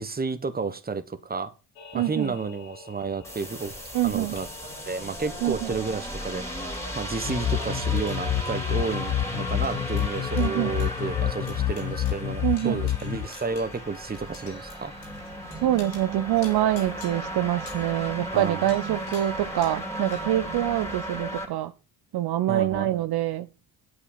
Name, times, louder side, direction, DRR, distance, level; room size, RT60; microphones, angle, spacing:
voice 1, 0.0-1.5 1.9-3.7 4.0-4.5 4.8-6.5 6.9-14.9 18.3-18.7 22.5-22.9, right 4 dB, 20° right, 1.3 m, -31 dB
sound 1, 1.8-20.2, left 5 dB, 85° left, 3.2 m, -50 dB
voice 2, 1.9-2.3 3.9-4.4 5.4-5.7 10.4-10.7 12.4-12.9 15.6-21.7 22.1-23.5, right 13 dB, 55° right, 0.8 m, -25 dB
sound 2, 3.2-21.5, equal, 5° left, 3.4 m, -35 dB
sound 3, 7.2-13.3, left 12 dB, 40° left, 0.5 m, -28 dB
8.5 x 8.2 x 5.7 m
supercardioid pair, 65°, 46 cm